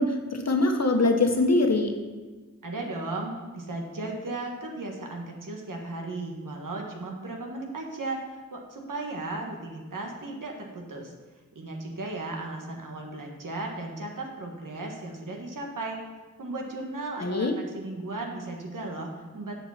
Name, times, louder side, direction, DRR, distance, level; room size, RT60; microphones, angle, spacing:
voice 1, 0.0-1.9 17.2-17.5, left 2 dB, 55° left, 3 dB, 1.2 m, -23 dB
voice 2, 2.6-11.1 11.5-16.0 16.4-19.5, right 2 dB, 90° right, 1 dB, 1.5 m, -36 dB
7.2 x 6.7 x 5.7 m, 1.3 s
wide cardioid pair, 65°, 31 cm